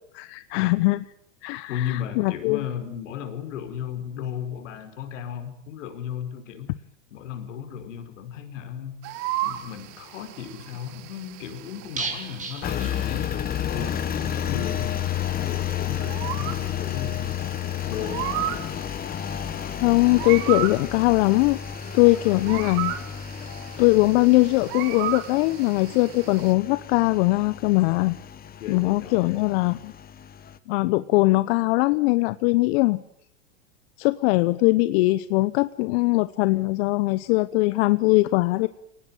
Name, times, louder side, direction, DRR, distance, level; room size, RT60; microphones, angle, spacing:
voice 1, 0.1-1.0 1.4-2.6 19.8-21.6 21.9-22.9 23.8-28.2 28.7-29.9 30.7-33.0 34.0-38.7, left 21 dB, 50° left, 14 dB, 1.0 m, -21 dB
voice 2, 1.7-6.7 7.1-9.0 9.4-13.4 13.7-17.3 17.9-18.9 22.0-22.5 28.6-29.4, left 9 dB, 70° left, 7 dB, 5.2 m, -35 dB
sound 1, 9.0-26.5, right 13 dB, 50° right, 2.4 m, -36 dB
sound 2, 12.0-13.7 14.0-14.1 14.4-14.5, right 4 dB, 20° right, 5.3 m, -35 dB
Engine, 12.6-30.6, left 10 dB, 25° left, 1.3 m, -32 dB
23.5 x 19.0 x 8.9 m, 0.71 s
hypercardioid pair, 110°, 39 cm